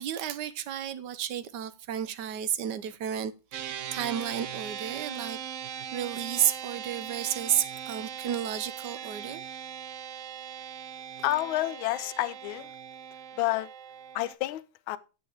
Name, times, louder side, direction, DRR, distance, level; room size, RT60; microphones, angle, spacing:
voice 1, 0.0-3.3 3.9-5.4 5.9-9.4, right 10 dB, 65° right, 1.2 m, -31 dB
sound 1, 3.5-14.3, right 9 dB, 85° right, 0.6 m, -40 dB
voice 2, 11.2-12.6 13.4-13.7 14.1-14.6 14.9-15.0, left 16 dB, 80° left, 1.4 m, -29 dB
7.7 x 7.1 x 4.8 m
omnidirectional pair, 2.2 m